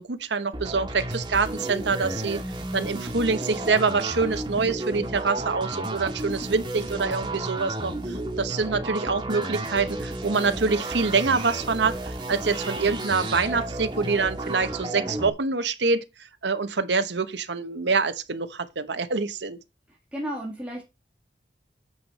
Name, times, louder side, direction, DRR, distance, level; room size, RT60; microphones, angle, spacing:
voice 1, 0.0-2.4 2.7-16.0 16.4-19.6, right 4 dB, 85° right, 1.0 m, -25 dB
sound 1, 0.5-15.3, right 1 dB, 25° right, 1.7 m, -32 dB
voice 2, 19.9-20.8, equal, 5° right, 1.9 m, -34 dB
9.4 x 6.6 x 4.2 m
head